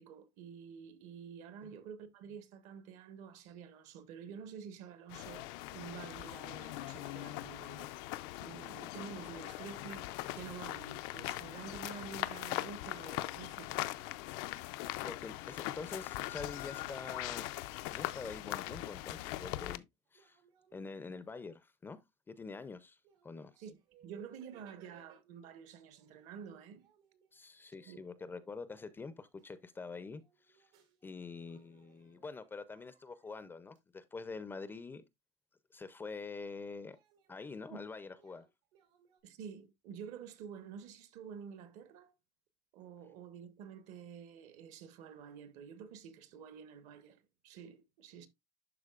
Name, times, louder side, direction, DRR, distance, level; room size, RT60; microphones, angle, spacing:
voice 1, 0.0-7.9 8.4-13.9 23.6-23.8 24.0-26.8 27.9-28.1 37.7-37.8 39.2-42.1 42.7-48.3, right 7 dB, 65° right, 1.0 m, -49 dB
sound 1, 5.1-19.8, left 17 dB, 75° left, 0.4 m, -41 dB
voice 2, 15.0-17.5 17.9-19.8 20.1-20.4 20.7-22.0 22.3-23.0 23.2-23.5 27.3-30.2 30.5-30.6 31.0-35.0 35.7-37.0 37.3-38.5, left 4 dB, 15° left, 0.4 m, -46 dB
sound 2, 20.0-21.8 22.5-22.6 23.0-25.5 25.9-31.1 31.4-33.8 36.9-39.2, right 8 dB, 90° right, 2.5 m, -68 dB
11.5 x 3.9 x 2.4 m
cardioid pair, 145°, 14 cm